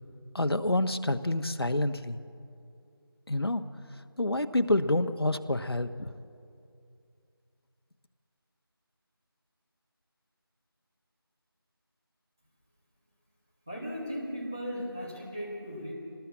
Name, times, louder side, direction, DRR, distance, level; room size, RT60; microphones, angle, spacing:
voice 1, 0.3-2.2 3.3-3.6 4.2-6.1, left 1 dB, 75° left, 8 dB, 1.3 m, -28 dB
voice 2, 13.7-15.9, equal, 10° right, -6 dB, 1.6 m, -37 dB
24.0 x 19.5 x 7.6 m, 2.5 s
figure-of-eight pair, 180°, 13 cm